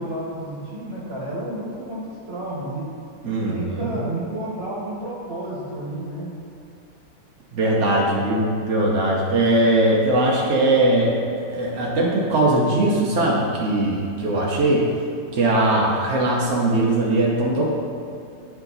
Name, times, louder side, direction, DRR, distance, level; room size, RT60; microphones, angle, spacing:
voice 1, 0.0-2.9 3.2-6.3 7.9-8.3, right 1 dB, 35° right, -6 dB, 1.3 m, -31 dB
voice 2, 3.2-3.9 7.5-11.2 11.5-14.9 15.3-17.7, right 1 dB, 70° right, -3 dB, 0.7 m, -20 dB
8.7 x 4.8 x 4.0 m, 2.6 s
omnidirectional pair, 2.4 m